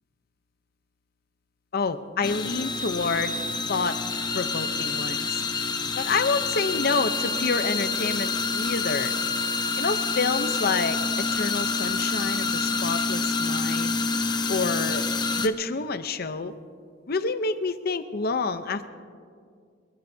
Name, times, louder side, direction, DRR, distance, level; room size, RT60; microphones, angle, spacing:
voice 1, 1.7-3.3 3.7-4.0 4.3-5.4 6.0-9.1 9.8-14.0 14.5-15.1 15.4-16.5 17.1-18.9, left 4 dB, 55° left, 11 dB, 0.8 m, -28 dB
sound 1, 2.2-15.5, left 4 dB, 25° left, 0.7 m, -27 dB
23.5 x 22.0 x 2.8 m, 2.2 s
head